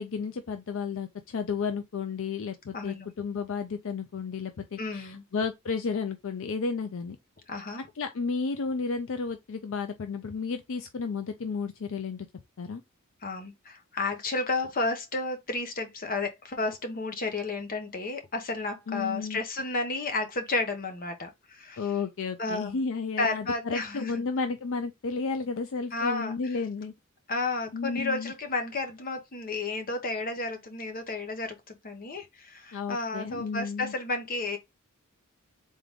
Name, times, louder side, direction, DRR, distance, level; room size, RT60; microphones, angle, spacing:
voice 1, 0.0-7.2 8.0-12.3 12.6-12.8 18.9-19.4 21.8-26.9 27.7-28.3 32.7-33.9, left 5 dB, 65° left, 0.5 m, -32 dB
voice 2, 2.7-3.1 4.8-5.2 7.5-7.9 13.2-21.8 22.4-22.8 23.2-24.2 25.9-26.5 27.3-34.6, left 3 dB, 40° left, 1.0 m, -32 dB
3.8 x 3.6 x 3.4 m
head